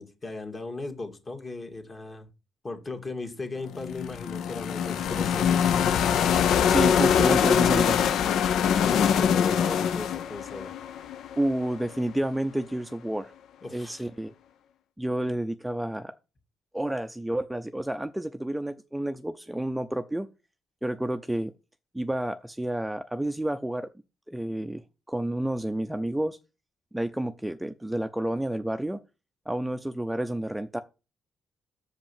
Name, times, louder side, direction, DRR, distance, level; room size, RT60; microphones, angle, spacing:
voice 1, 0.0-2.3 2.6-6.3 8.8-10.8 13.6-14.1, left 3 dB, 30° left, 2.1 m, -37 dB
sound 1, 3.7-11.8, left 8 dB, 75° left, 0.6 m, -23 dB
voice 2, 6.7-8.0 11.4-13.3 13.7-14.3 15.0-16.1 16.7-20.3 20.8-21.5 21.9-23.9 24.3-24.8 25.1-26.4 26.9-29.0 29.5-30.8, right 1 dB, 5° right, 0.5 m, -30 dB
6.6 x 5.3 x 7.2 m
cardioid pair, 90°, 0 cm